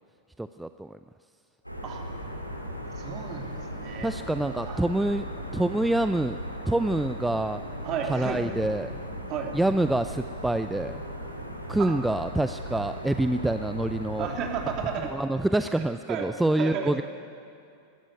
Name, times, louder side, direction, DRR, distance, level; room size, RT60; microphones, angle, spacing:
voice 1, 0.4-1.0 4.0-5.3 5.5-6.4 6.7-7.6 8.0-9.0 9.5-11.0 11.7-14.3 15.0-17.0, right 1 dB, 5° right, 11 dB, 0.5 m, -26 dB
sound 1, 1.6-15.1, equal, 90° left, 2.3 m, -37 dB
voice 2, 3.0-4.1 4.4-4.8 7.8-8.5 9.3-9.6 11.8-11.9 14.2-15.1 15.7-15.8 16.1-16.3 16.6-16.9, right 7 dB, 35° right, 2 dB, 3.1 m, -33 dB
21.0 x 14.0 x 9.2 m, 2.5 s
figure-of-eight pair, 90°, 0 cm